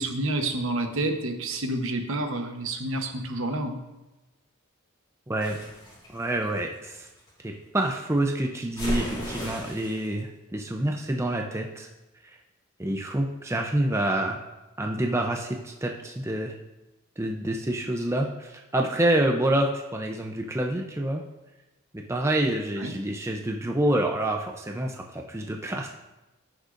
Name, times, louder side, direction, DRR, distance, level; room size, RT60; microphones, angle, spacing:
voice 1, 0.0-3.8 22.8-22.9, right 2 dB, 65° right, 5 dB, 1.0 m, -29 dB
voice 2, 5.3-5.6 6.1-7.1 7.4-11.9 12.2-12.4 12.8-14.4 14.8-16.5 17.2-21.2 21.9-25.9, right 1 dB, 10° right, 2 dB, 0.5 m, -27 dB
sound 1, 5.4-7.3 8.8-10.1, equal, 20° left, 2.8 m, -34 dB
14.5 x 6.5 x 2.5 m, 1.0 s
head